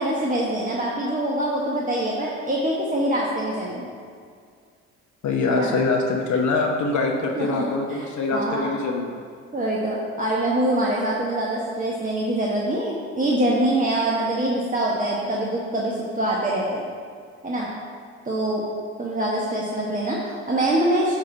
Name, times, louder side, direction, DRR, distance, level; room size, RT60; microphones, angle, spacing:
voice 1, 0.0-3.9 5.5-5.7 7.4-8.1 8.3-8.7 9.5-16.8 17.4-17.7 18.2-18.6 19.0-21.1, right 1 dB, 20° right, -4 dB, 1.4 m, -24 dB
voice 2, 5.2-9.2, left 3 dB, 50° left, 0 dB, 0.9 m, -24 dB
8.8 x 5.4 x 4.0 m, 2.2 s
hypercardioid pair, 50°, 37 cm